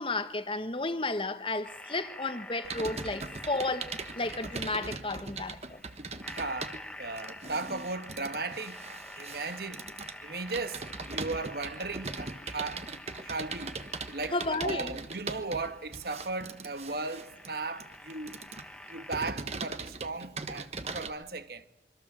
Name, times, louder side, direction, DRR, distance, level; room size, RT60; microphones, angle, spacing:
voice 1, 0.0-5.8 14.3-15.0, left 2 dB, 30° left, 1.2 m, -33 dB
sound 1, 1.6-19.3, left 1 dB, 5° left, 1.2 m, -48 dB
Computer keyboard, 2.6-21.1, right 3 dB, 35° right, 1.3 m, -40 dB
voice 2, 6.3-8.8 9.1-9.8 10.2-12.9 13.2-13.8 14.1-18.4 18.9-21.7, right 3 dB, 60° right, 1.4 m, -36 dB
26.0 x 24.0 x 7.5 m
head